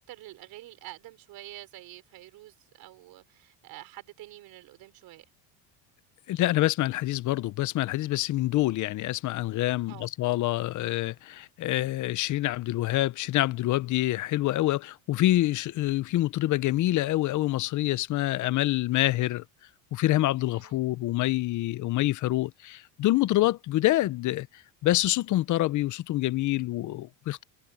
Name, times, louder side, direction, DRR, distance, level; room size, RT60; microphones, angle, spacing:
voice 1, 0.1-5.2 9.9-10.1 20.5-20.8, right 16 dB, 60° right, 4.2 m, -47 dB
voice 2, 6.3-19.4 19.9-27.4, left 16 dB, 50° left, 0.8 m, -26 dB
cardioid pair, 125°, 39 cm